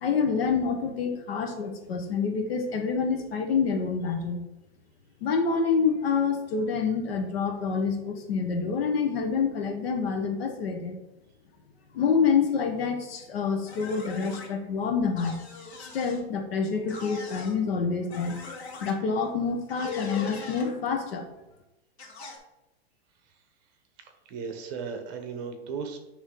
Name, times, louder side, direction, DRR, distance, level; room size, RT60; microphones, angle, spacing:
voice 1, 0.0-4.4 5.2-11.0 11.9-15.4 15.9-18.4 18.8-21.3, left 5 dB, 70° left, 4 dB, 1.3 m, -27 dB
sound 1, 13.7-14.5 15.2-16.2 16.9-17.6 18.1-18.9 19.7-20.7 22.0-22.4, left 3 dB, 90° left, 2.0 m, -42 dB
voice 2, 24.0-26.0, right 5 dB, 40° right, 5 dB, 1.1 m, -36 dB
9.3 x 3.3 x 3.9 m, 0.96 s
supercardioid pair, 150°, 32 cm